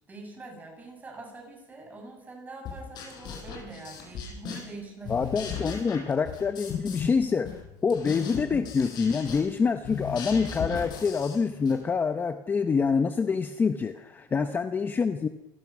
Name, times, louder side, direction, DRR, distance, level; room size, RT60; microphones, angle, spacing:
voice 1, 0.1-5.3 9.6-9.7 14.3-14.5, right 3 dB, 15° right, 1 dB, 8.0 m, -44 dB
sound 1, 2.7-4.8 5.0-7.2 7.5-11.8, left 7 dB, 45° left, 6.8 m, -37 dB
voice 2, 5.1-15.3, left 5 dB, 20° left, 9 dB, 0.8 m, -26 dB
28.0 x 17.5 x 6.1 m, 0.93 s
cardioid pair, 155°, 10 cm